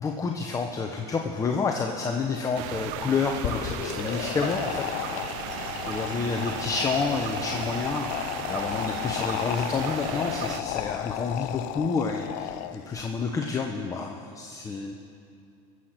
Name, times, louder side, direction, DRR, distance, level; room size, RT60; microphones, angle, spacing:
voice 1, 0.0-4.7 5.9-14.9, left 4 dB, 20° left, 2 dB, 0.9 m, -29 dB
Silence and a Solitary Bird, 2.6-10.6, right 13 dB, 65° right, 0.6 m, -36 dB
sound 1, 3.3-13.0, left 16 dB, 55° left, 0.4 m, -34 dB
voice 2, 4.4-6.0, equal, 5° right, -6 dB, 4.2 m, -44 dB
22.0 x 8.0 x 6.0 m, 2.4 s
supercardioid pair, 135°, 16 cm